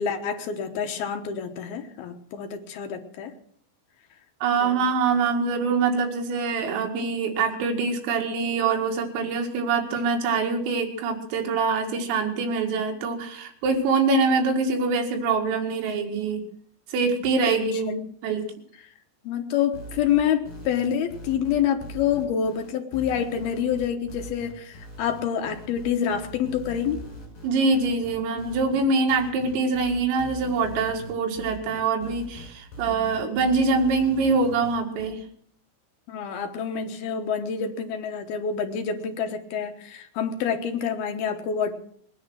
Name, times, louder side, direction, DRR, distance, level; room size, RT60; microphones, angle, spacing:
voice 1, 0.0-3.3 4.6-4.9 19.2-27.0 32.9-33.2 36.1-41.7, left 8 dB, 70° left, 4 dB, 2.4 m, -27 dB
voice 2, 4.4-16.4 16.9-18.5 27.4-35.2, right 4 dB, 90° right, 3 dB, 4.7 m, -24 dB
sound 1, 19.7-35.1, equal, 30° left, 7.0 m, -42 dB
20.5 x 10.0 x 6.3 m, 0.62 s
omnidirectional pair, 5.8 m